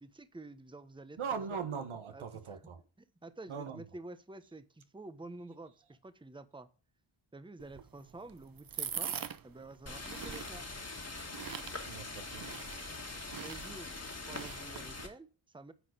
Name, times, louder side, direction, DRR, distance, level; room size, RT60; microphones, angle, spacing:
voice 1, 0.0-1.7 2.1-2.6 3.2-6.7 7.3-9.1 9.4-10.7 13.3-15.7, right 2 dB, 10° right, 0.9 m, -49 dB
voice 2, 1.2-2.8 3.5-3.8 11.9-12.5, right 6 dB, 80° right, 1.3 m, -40 dB
sound 1, 7.6-15.1, right 7 dB, 45° right, 0.7 m, -44 dB
sound 2, 9.9-15.1, left 3 dB, 30° left, 1.9 m, -43 dB
9.4 x 4.2 x 5.0 m
cardioid pair, 55°, 49 cm